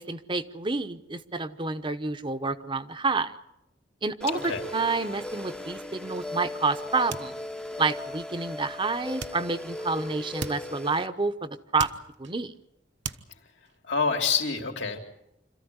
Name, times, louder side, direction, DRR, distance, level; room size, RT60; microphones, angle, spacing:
voice 1, 0.0-3.3 4.0-7.4 7.8-11.9 12.2-12.5, right 3 dB, 25° right, 10 dB, 0.9 m, -29 dB
sound 1, 4.2-11.1, left 2 dB, 5° left, 0.8 m, -38 dB
voice 2, 4.3-4.6 13.9-15.0, left 5 dB, 80° left, 2 dB, 3.3 m, -27 dB
sound 2, 6.2-6.6 6.9-8.0 9.2-10.1 10.4-11.3 11.5-12.6 13.0-13.8, right 5 dB, 65° right, 1.1 m, -40 dB
26.5 x 14.5 x 9.6 m, 0.82 s
head